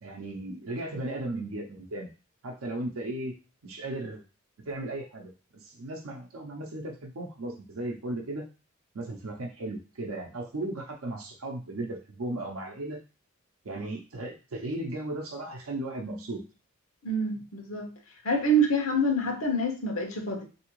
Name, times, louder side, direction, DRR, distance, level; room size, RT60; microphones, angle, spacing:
voice 1, 0.0-2.1 2.4-3.4 3.6-4.2 4.7-8.4 8.9-13.0 13.6-16.4, right 2 dB, 85° right, 1 dB, 0.6 m, -36 dB
voice 2, 17.0-17.9 18.2-20.4, right 1 dB, 85° left, 2 dB, 0.9 m, -26 dB
3.5 x 2.7 x 3.0 m, 0.32 s
head